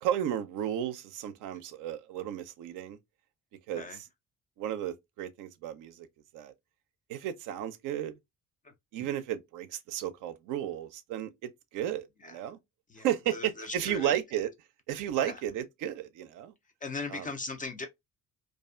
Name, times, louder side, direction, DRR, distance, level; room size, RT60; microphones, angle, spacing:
voice 1, 0.0-3.0 3.7-3.9 4.6-6.1 6.3-6.5 7.1-8.2 8.9-12.6 13.0-14.5 14.9-16.5 17.1-17.3, right 11 dB, 50° right, 0.5 m, -33 dB
voice 2, 12.9-14.1 15.2-15.4 16.8-17.9, left 3 dB, 20° left, 0.3 m, -39 dB
2.4 x 2.3 x 2.3 m
figure-of-eight pair, 45°, 41 cm